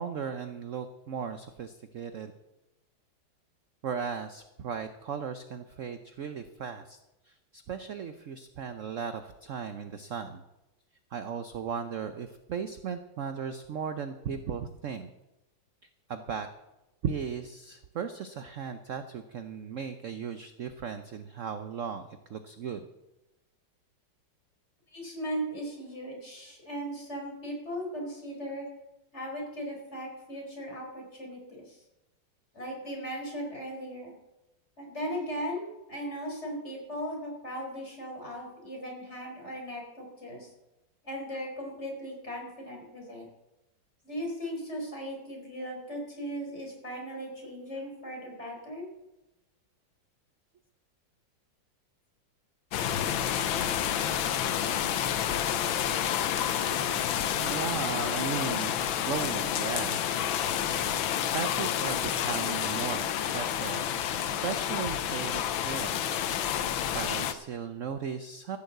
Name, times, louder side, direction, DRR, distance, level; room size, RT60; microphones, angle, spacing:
voice 1, 0.0-2.3 3.8-7.0 7.2-10.4 11.1-15.1 16.1-16.5 17.0-22.0 22.3-22.9 57.3-60.2 61.3-63.9 64.2-66.5 66.9-68.6, right 6 dB, 60° right, 9 dB, 0.8 m, -36 dB
voice 2, 24.9-28.6 29.1-31.8 32.5-34.1 34.8-40.5 41.0-43.3 44.0-48.9, equal, 35° left, -1 dB, 4.5 m, -38 dB
rain strong with thunders, 52.7-67.3, left 10 dB, 90° left, 1.6 m, -29 dB
15.0 x 7.2 x 7.9 m, 0.98 s
omnidirectional pair, 2.1 m